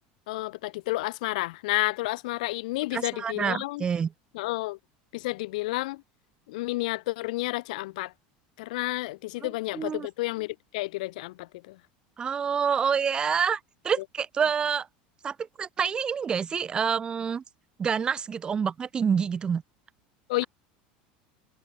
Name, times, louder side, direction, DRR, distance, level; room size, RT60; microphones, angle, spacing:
voice 1, 0.3-3.8 4.3-4.8 5.1-6.0 6.5-8.1 8.6-11.8 20.3-20.4, left 20 dB, 85° left, 0.3 m, -31 dB
voice 2, 2.9-4.1 9.4-10.1 12.2-14.9 15.2-17.4 17.8-19.6, right 6 dB, 20° right, 1.0 m, -27 dB
supercardioid pair, 145°, 4 cm